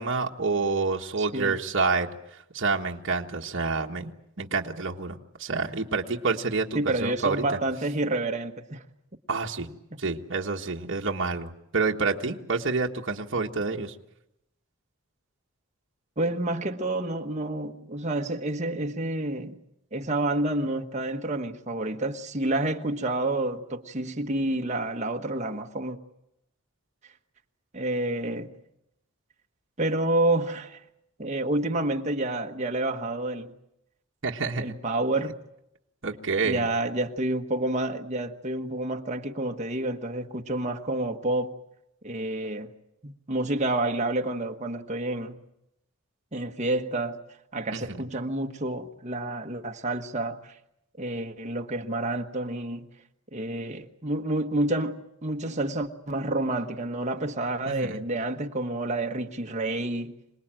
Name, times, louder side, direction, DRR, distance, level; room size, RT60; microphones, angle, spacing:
voice 1, 0.0-2.1 2.5-4.1 4.4-7.4 9.3-9.7 10.0-13.9 34.2-34.7 36.0-36.6 47.7-48.0 57.7-58.0, right 4 dB, 55° right, 1.5 m, -28 dB
voice 2, 1.2-1.6 6.7-8.8 16.2-19.6 19.9-26.0 27.7-28.5 29.8-30.8 31.2-33.5 34.6-35.4 36.4-41.5 42.0-42.7 43.0-45.4 46.3-47.2 47.5-50.5 51.0-52.8 53.3-60.1, right 2 dB, 30° right, 1.3 m, -29 dB
26.5 x 19.0 x 9.0 m
head